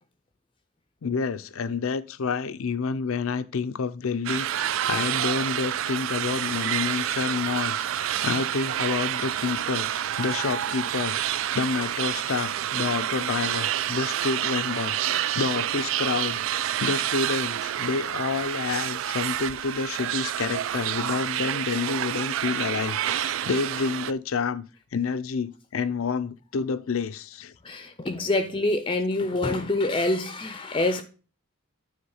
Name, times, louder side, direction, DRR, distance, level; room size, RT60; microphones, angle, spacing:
voice 1, 1.0-24.6 24.9-27.5, left 5 dB, 85° left, 0.5 m, -29 dB
sound 1, 4.3-24.1, right 11 dB, 75° right, 0.3 m, -28 dB
voice 2, 27.6-31.0, left 2 dB, 25° left, 0.5 m, -26 dB
9.6 x 3.6 x 5.5 m
head